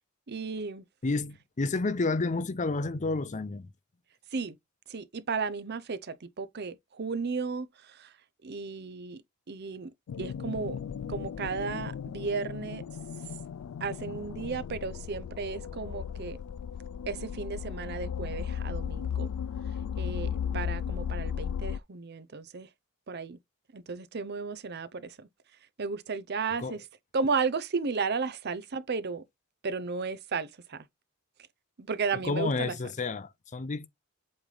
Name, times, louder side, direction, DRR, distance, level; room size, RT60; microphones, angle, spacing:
voice 1, 0.3-0.8 4.3-4.6 4.9-8.1 8.4-9.2 9.5-10.8 11.1-12.8 13.8-16.4 17.1-19.3 20.0-22.7 23.1-23.4 23.7-25.3 25.8-26.8 27.1-29.2 29.6-30.8 31.8-32.7, right 4 dB, 50° right, 0.7 m, -34 dB
voice 2, 1.0-3.7 26.6-26.8 32.2-33.9, left 3 dB, 35° left, 0.5 m, -30 dB
sound 1, 10.1-21.8, left 8 dB, 85° left, 0.3 m, -36 dB
7.9 x 3.3 x 3.9 m
head